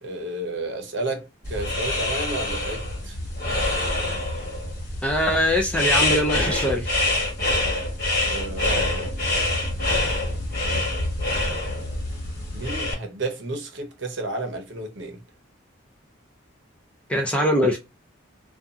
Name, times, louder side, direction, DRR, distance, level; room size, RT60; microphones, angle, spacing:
voice 1, 0.0-3.2 8.2-9.2 10.6-11.0 12.5-15.2, right 2 dB, 60° right, 0.7 m, -32 dB
sound 1, 1.4-12.9, left 2 dB, 45° left, 1.3 m, -26 dB
voice 2, 5.0-6.9 17.1-17.8, equal, 5° left, 0.4 m, -22 dB
2.6 x 2.3 x 2.4 m
head